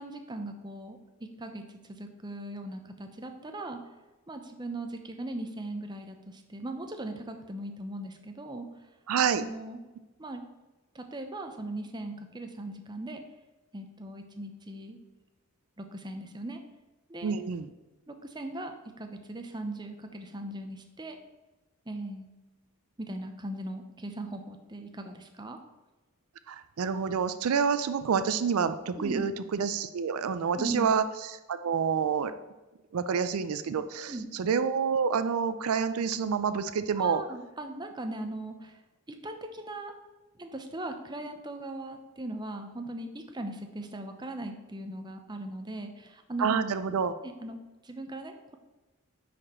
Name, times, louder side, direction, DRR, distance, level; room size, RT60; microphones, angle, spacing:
voice 1, 0.0-3.8 4.3-8.7 9.3-9.8 10.2-10.4 10.9-13.2 13.7-15.0 15.8-16.6 17.1-17.3 18.1-21.2 21.9-22.3 23.0-25.6 29.0-29.3 30.6-30.9 34.1-34.3 37.0-38.8 39.1-39.9 40.4-46.6 47.2-48.6, right 1 dB, 20° right, 5 dB, 0.6 m, -39 dB
voice 2, 9.1-9.4 17.2-17.7 26.5-31.0 31.5-32.3 32.9-37.2 46.4-47.1, right 6 dB, 80° right, 12 dB, 0.4 m, -28 dB
9.8 x 4.3 x 4.3 m, 1.1 s
head